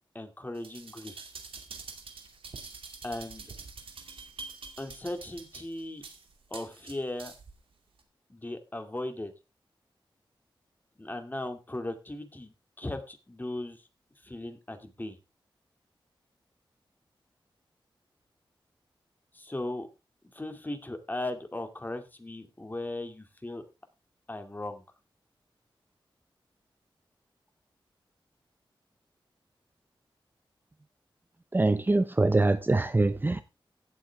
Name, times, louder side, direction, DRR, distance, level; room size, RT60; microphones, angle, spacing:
voice 1, 0.1-1.2 3.0-3.5 4.8-6.0 6.5-7.3 8.3-9.3 11.0-13.8 14.2-15.2 19.3-19.9 20.3-23.7 24.3-24.8, left 1 dB, 20° left, 2.3 m, -37 dB
sound 1, 0.6-7.6 8.0-8.1, right 4 dB, 90° right, 2.5 m, -46 dB
voice 2, 31.5-33.4, right 2 dB, 20° right, 0.7 m, -24 dB
16.5 x 7.8 x 3.5 m
wide cardioid pair, 80°, 9 cm